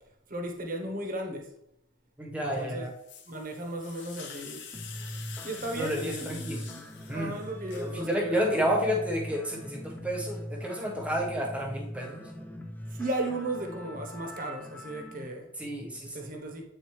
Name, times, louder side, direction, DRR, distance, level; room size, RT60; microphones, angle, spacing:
voice 1, 0.3-1.5 2.3-2.8 3.3-4.6 5.4-8.7 12.9-15.5 16.1-16.7, right 1 dB, 40° right, 0.9 m, -36 dB
voice 2, 2.2-2.9 5.7-6.7 7.1-7.3 7.7-12.3 15.6-16.4, equal, 5° right, 1.1 m, -31 dB
sound 1, 2.5-8.0, left 7 dB, 60° left, 0.9 m, -46 dB
sound 2, 4.7-15.3, equal, 10° left, 0.5 m, -41 dB
8.5 x 3.9 x 3.1 m
head